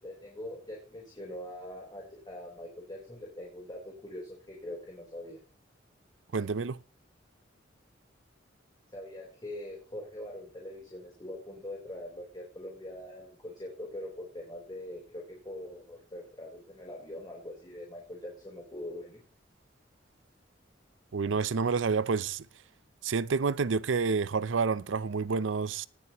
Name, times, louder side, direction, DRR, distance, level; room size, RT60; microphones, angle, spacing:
voice 1, 0.0-5.4 8.9-19.2, left 1 dB, 25° left, 4.0 m, -43 dB
voice 2, 6.3-6.8 21.1-22.5 23.0-25.9, right 5 dB, 90° right, 0.6 m, -29 dB
19.0 x 10.0 x 3.0 m
head